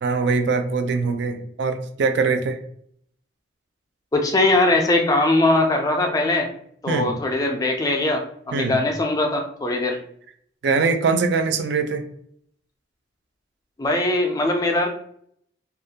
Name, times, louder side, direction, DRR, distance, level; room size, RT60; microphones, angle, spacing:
voice 1, 0.0-2.6 6.9-7.1 8.5-8.8 10.6-12.0, right 4 dB, 60° right, 8 dB, 0.3 m, -22 dB
voice 2, 4.1-6.5 6.8-10.0 13.8-14.9, left 2 dB, 20° left, 3 dB, 0.3 m, -21 dB
2.3 x 2.1 x 2.7 m, 0.65 s
head